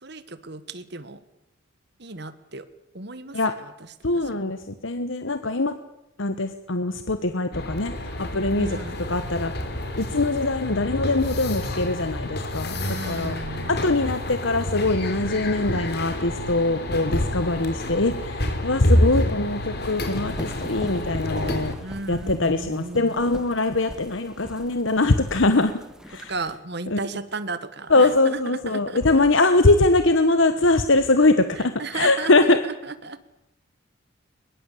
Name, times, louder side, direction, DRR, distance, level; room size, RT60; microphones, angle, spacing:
voice 1, 0.0-1.2 2.0-2.7 2.9-4.4 8.6-9.0 12.7-13.8 21.8-23.1 26.3-29.2 31.6-33.2, right 3 dB, 55° right, 13 dB, 1.6 m, -35 dB
voice 2, 4.0-5.8 6.2-8.8 9.1-9.5 10.0-12.8 13.0-13.4 13.7-21.7 22.1-25.8 26.1-26.3 26.9-27.0 27.9-32.6, left 2 dB, 70° left, 10 dB, 1.2 m, -22 dB
sound 1, 7.5-21.7, left 1 dB, 50° left, 3.5 m, -28 dB
sound 2, 19.8-26.6, equal, 5° right, 1.6 m, -41 dB
22.0 x 22.0 x 8.5 m, 0.86 s
head